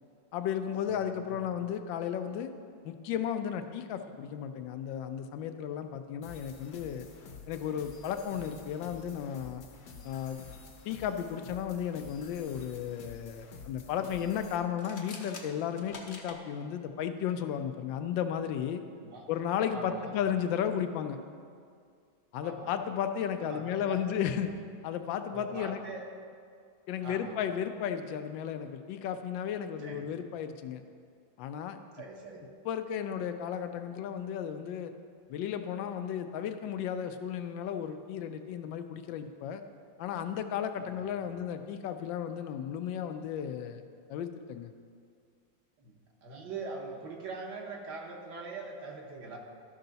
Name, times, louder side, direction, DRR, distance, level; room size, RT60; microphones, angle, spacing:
voice 1, 0.3-2.5 2.8-7.1 7.5-9.6 10.0-10.4 10.8-18.8 19.3-21.2 22.3-24.5 24.8-25.8 26.9-30.8 31.4-31.8 32.6-34.9 35.3-39.6 40.0-43.8 44.1-44.7, left 9 dB, 90° left, 8 dB, 1.3 m, -34 dB
sound 1, 6.2-14.6, left 4 dB, 75° left, 1.5 m, -50 dB
sound 2, 14.7-16.4, left 3 dB, 55° left, 0.5 m, -46 dB
voice 2, 19.7-20.1 22.4-22.7 23.4-24.2 25.3-26.1 27.0-27.3 29.8-30.1 31.9-32.4 40.8-41.3 45.8-49.4, right 3 dB, 65° right, 0 dB, 1.7 m, -42 dB
12.5 x 5.5 x 4.0 m, 2.2 s
omnidirectional pair, 2.0 m